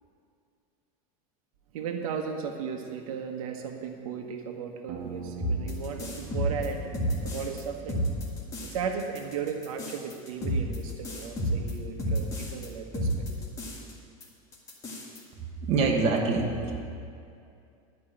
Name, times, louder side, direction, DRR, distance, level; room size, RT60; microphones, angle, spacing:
voice 1, 1.7-8.0 8.6-13.4, right 6 dB, 80° right, 3 dB, 1.2 m, -36 dB
sound 1, 4.9-9.6, right 6 dB, 55° right, 1.9 m, -44 dB
sound 2, 5.4-7.6 7.9-8.7 9.0-12.7 12.9-13.9 14.2-14.3 14.5-15.2, equal, 20° left, 2.0 m, -30 dB
voice 2, 15.4-16.8, right 4 dB, 35° right, 0 dB, 1.4 m, -26 dB
12.0 x 5.3 x 8.8 m, 2.5 s
supercardioid pair, 155°, 18 cm